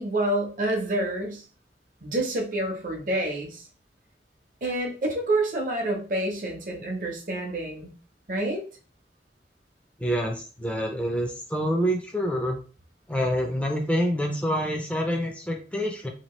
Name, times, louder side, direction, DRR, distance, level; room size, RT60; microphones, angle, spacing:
voice 1, 0.0-1.4 2.0-3.7 4.6-7.9 8.3-8.6, right 1 dB, 50° right, 1 dB, 0.8 m, -28 dB
voice 2, 10.0-12.6 13.1-16.1, equal, 5° left, 2 dB, 0.5 m, -27 dB
2.9 x 2.5 x 3.0 m, 0.37 s
head